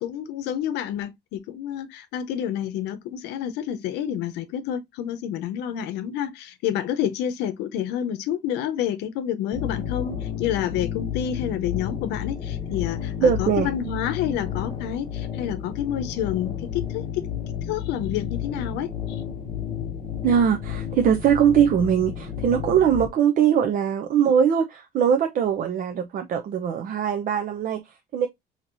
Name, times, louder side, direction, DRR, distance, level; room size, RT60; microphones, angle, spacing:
voice 1, 0.0-17.2 17.7-19.2, left 10 dB, 90° left, 0.7 m, -29 dB
sound 1, 9.5-23.1, left 9 dB, 30° left, 0.8 m, -31 dB
voice 2, 13.2-13.7 20.2-28.3, right 8 dB, 55° right, 0.5 m, -21 dB
4.4 x 2.8 x 2.5 m
cardioid pair, 110°, 17 cm